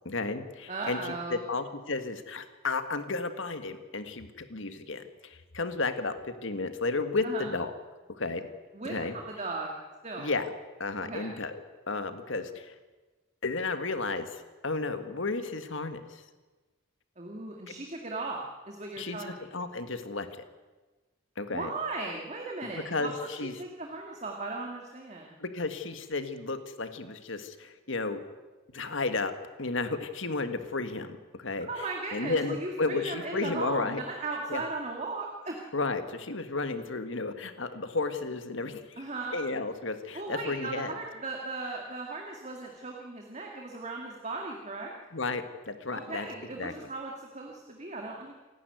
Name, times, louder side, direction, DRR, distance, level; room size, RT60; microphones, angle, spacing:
voice 1, 0.1-7.7 8.2-8.4 8.9-9.2 10.2-10.5 10.8-11.6 11.9-12.8 13.4-16.2 19.0-20.3 21.4-21.7 22.6-23.5 25.4-28.2 28.7-29.3 29.6-31.7 32.1-34.0 34.5-34.6 35.7-39.0 39.3-40.9 45.1-46.3 46.6-46.7, left 3 dB, 65° left, 9 dB, 1.7 m, -33 dB
voice 2, 0.7-1.4 7.2-7.4 8.7-9.8 10.0-10.3 11.0-11.3 17.2-19.5 21.5-25.4 31.7-35.6 39.0-39.4 40.1-44.9 45.9-48.3, right 3 dB, 35° right, 1 dB, 2.3 m, -37 dB
28.0 x 11.5 x 9.3 m, 1.2 s
head